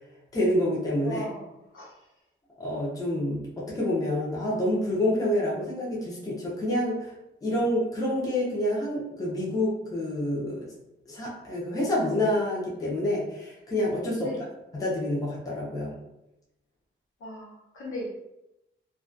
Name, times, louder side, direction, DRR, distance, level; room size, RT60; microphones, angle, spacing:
voice 1, 0.3-1.3 2.6-7.1 7.4-10.6 11.1-14.3 14.7-15.9, left 1 dB, 15° left, -5 dB, 0.5 m, -27 dB
voice 2, 1.0-1.5 1.7-1.9 14.2-14.4 17.2-18.1, left 1 dB, 75° left, -4 dB, 0.9 m, -37 dB
2.2 x 2.2 x 2.5 m, 0.89 s
wide cardioid pair, 175°, 21 cm